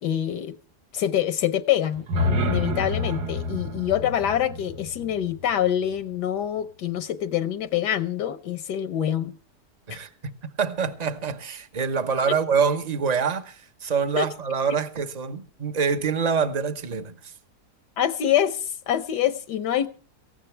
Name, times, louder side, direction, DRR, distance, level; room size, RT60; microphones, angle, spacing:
voice 1, 0.0-0.6 0.9-9.3 9.9-10.0 14.2-14.3 18.0-19.9, left 10 dB, 80° left, 1.4 m, -25 dB
sound 1, 1.9-6.0, left 1 dB, 75° right, 2.1 m, -29 dB
voice 2, 9.9-17.3, right 6 dB, 30° right, 0.8 m, -26 dB
18.0 x 15.0 x 3.3 m
omnidirectional pair, 1.8 m